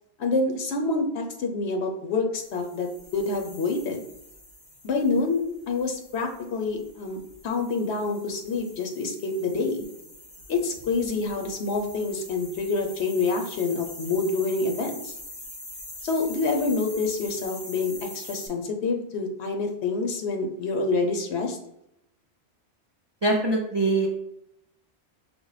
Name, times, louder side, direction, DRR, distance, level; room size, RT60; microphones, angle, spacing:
voice 1, 0.2-4.0 4.8-9.9 10.5-15.1 16.0-21.6, left 3 dB, 85° left, 4 dB, 1.0 m, -27 dB
sound 1, 2.4-18.5, left 1 dB, 45° left, 1.8 m, -44 dB
voice 2, 23.2-24.1, right 2 dB, 40° right, 0 dB, 0.4 m, -23 dB
5.2 x 2.1 x 4.7 m, 0.79 s
omnidirectional pair, 1.1 m